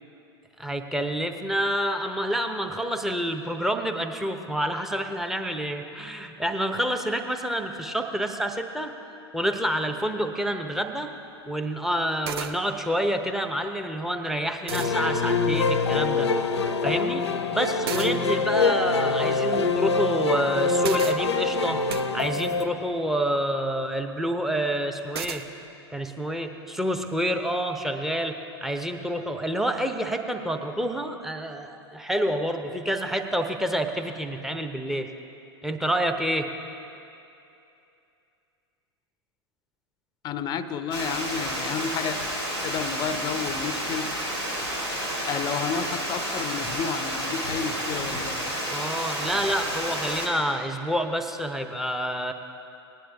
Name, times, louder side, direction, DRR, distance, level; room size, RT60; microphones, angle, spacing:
voice 1, 0.6-8.9 9.3-11.1 11.5-16.3 16.8-17.3 17.5-21.8 22.1-25.4 25.9-35.1 35.6-36.5 48.7-52.3, equal, ahead, 6 dB, 0.8 m, -28 dB
sound 1, 10.9-11.0 12.0-12.1 12.3-12.5 14.1-14.2 14.7-14.9 17.9-18.1 20.8-21.2 21.9-22.1 25.1-25.4, right 8 dB, 65° right, 0.6 m, -33 dB
sound 2, 14.7-22.7, left 4 dB, 80° left, 0.6 m, -25 dB
voice 2, 40.2-42.2 42.6-44.3 45.2-48.4, left 7 dB, 30° left, 12 dB, 0.6 m, -31 dB
Water, 40.9-50.3, equal, 90° right, 2.8 m, -30 dB
18.5 x 10.0 x 3.5 m, 2.7 s
figure-of-eight pair, 90°, 14 cm